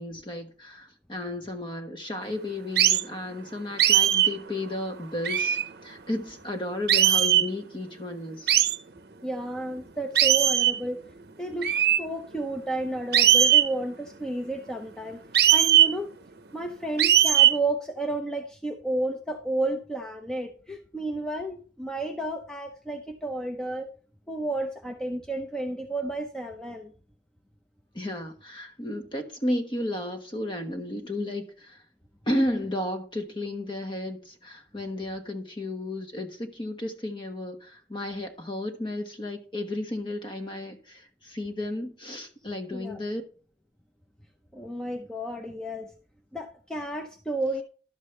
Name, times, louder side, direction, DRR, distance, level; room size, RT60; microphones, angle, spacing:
voice 1, 0.0-8.5 27.9-31.8 32.3-43.2, left 1 dB, 30° left, 1.2 m, -33 dB
sound 1, 2.8-3.0 3.8-4.3 5.2-5.7 6.9-7.5 8.5-8.8 10.1-10.8 11.6-12.0 13.1-13.7 15.3-15.9 17.0-17.6, right 11 dB, 60° right, 0.7 m, -19 dB
voice 2, 9.2-11.0 11.4-11.7 12.0-15.2 15.5-16.1 16.5-23.9 24.3-26.9 42.7-43.0 44.5-45.9 46.3-47.6, right 2 dB, 5° left, 0.7 m, -32 dB
11.5 x 7.3 x 3.3 m
head